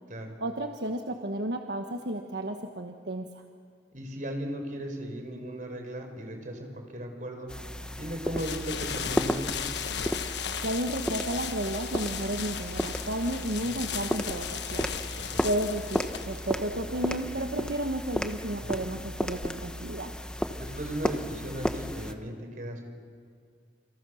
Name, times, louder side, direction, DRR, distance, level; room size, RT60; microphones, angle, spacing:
voice 1, 0.4-3.4 10.6-15.0 15.4-20.1, right 1 dB, 75° right, 4 dB, 1.3 m, -32 dB
voice 2, 3.9-7.5 8.0-9.5 13.6-13.8 15.1-15.4 18.6-18.9 20.6-22.8, right 1 dB, 45° right, 4 dB, 4.7 m, -37 dB
sound 1, 7.5-22.1, equal, 5° left, 1.0 m, -34 dB
sound 2, 8.4-18.0, left 7 dB, 75° left, 1.3 m, -37 dB
28.5 x 28.5 x 6.5 m, 2.1 s
head